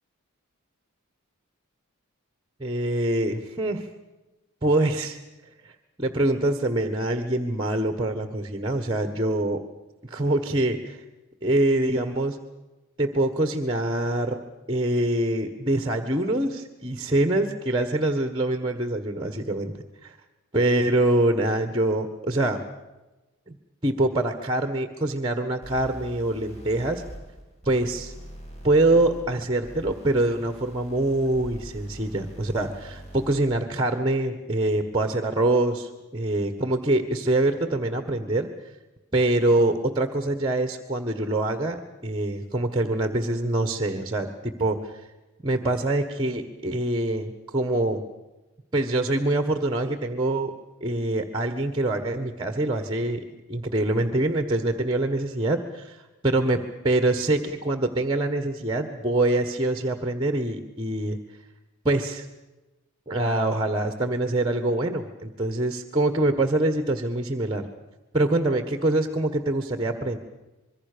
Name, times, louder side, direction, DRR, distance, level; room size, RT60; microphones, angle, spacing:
voice 1, 2.6-3.9 4.6-5.2 5.6-5.7 6.0-9.6 10.0-11.0 11.4-12.4 13.0-14.4 14.7-19.7 20.0-20.2 20.5-22.6 23.5-23.6 23.8-27.0 27.6-28.1 28.6-38.5 39.1-44.9 45.4-48.0 48.7-50.5 50.8-53.2 53.5-56.0 56.2-61.2 61.8-62.3 63.1-67.7 68.1-70.2, right 2 dB, 20° right, 9 dB, 1.5 m, -24 dB
sound 1, 25.6-33.6, right 1 dB, 30° left, 5.9 m, -43 dB
26.0 x 22.5 x 6.9 m, 1.1 s
head